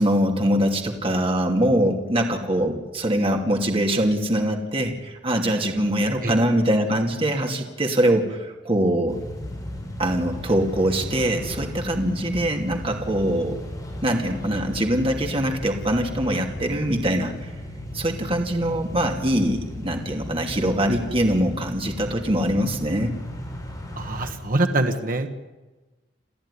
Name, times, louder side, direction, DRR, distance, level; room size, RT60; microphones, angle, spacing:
voice 1, 0.0-9.2 10.0-13.6 14.0-17.5 17.9-23.1, right 1 dB, 30° right, 2 dB, 2.6 m, -23 dB
sound 1, 9.1-24.3, left 1 dB, 20° left, 6.6 m, -35 dB
voice 2, 24.0-25.3, right 2 dB, 50° right, 6 dB, 1.5 m, -24 dB
29.0 x 14.0 x 9.9 m, 1.2 s
head